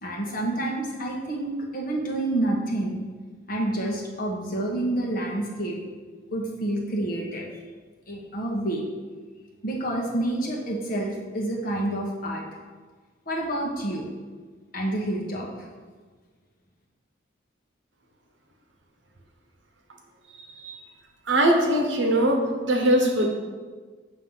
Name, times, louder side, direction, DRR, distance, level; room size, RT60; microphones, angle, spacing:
voice 1, 0.0-3.0 3.5-5.8 6.3-7.5 8.1-8.8 9.6-12.4 13.2-14.0 14.7-15.7, right 1 dB, 45° left, -2 dB, 1.3 m, -28 dB
voice 2, 20.3-20.7 21.3-23.3, right 1 dB, 70° right, 2 dB, 1.0 m, -22 dB
7.6 x 3.2 x 5.6 m, 1.5 s
head